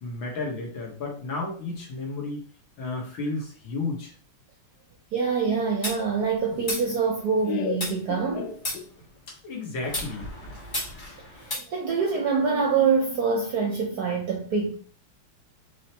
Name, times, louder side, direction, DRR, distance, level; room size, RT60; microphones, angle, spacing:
voice 1, 0.0-2.5 2.8-4.1 9.4-10.3, left 3 dB, 65° left, 2.1 m, -32 dB
voice 2, 5.1-8.5 11.7-14.7, right 5 dB, 65° right, 1.0 m, -25 dB
Laughter, 5.5-9.2, left 6 dB, 85° left, 1.5 m, -36 dB
sound 1, 5.8-7.4 7.8-9.4 9.8-11.5, left 1 dB, 25° left, 1.4 m, -35 dB
5.6 x 3.3 x 2.9 m
omnidirectional pair, 2.4 m